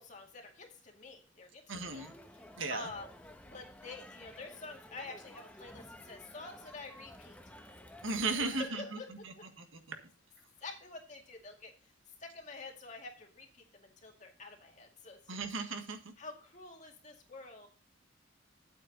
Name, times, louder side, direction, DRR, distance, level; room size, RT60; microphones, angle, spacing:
voice 1, 0.0-3.1 3.5-7.4 8.3-9.5 10.6-11.9 12.2-15.4 16.2-17.7, left 3 dB, 35° left, 2 dB, 2.2 m, -48 dB
voice 2, 1.7-2.1 2.6-2.9 8.0-9.0 9.2-9.6 15.3-16.0, right 3 dB, 75° right, 6 dB, 1.7 m, -36 dB
Crowd, 1.8-8.6, left 1 dB, 5° left, 1.1 m, -53 dB
9.9 x 8.4 x 4.1 m, 0.37 s
head